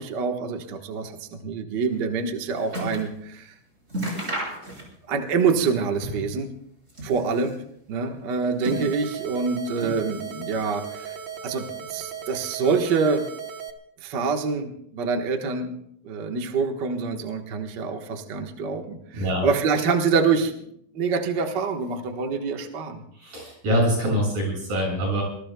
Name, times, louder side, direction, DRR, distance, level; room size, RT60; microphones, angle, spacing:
voice 1, 0.0-3.5 4.1-4.3 5.1-6.5 7.0-7.5 7.9-11.2 11.4-13.2 14.0-15.7 16.0-20.5 20.9-23.0, right 5 dB, 45° right, 3 dB, 1.5 m, -26 dB
sound 1, 2.0-3.2 3.5-3.6 3.9-5.2 5.5-6.4 6.8-7.6 8.3-9.3 9.8-10.5 10.8-11.5 12.2-12.3, right 1 dB, 20° right, 5.4 m, -34 dB
sound 2, 8.6-13.7, right 7 dB, 65° right, 1.1 m, -37 dB
voice 2, 19.1-19.5 23.1-25.2, equal, 80° right, -2 dB, 8.7 m, -24 dB
26.0 x 20.5 x 2.3 m, 0.69 s
omnidirectional pair, 3.7 m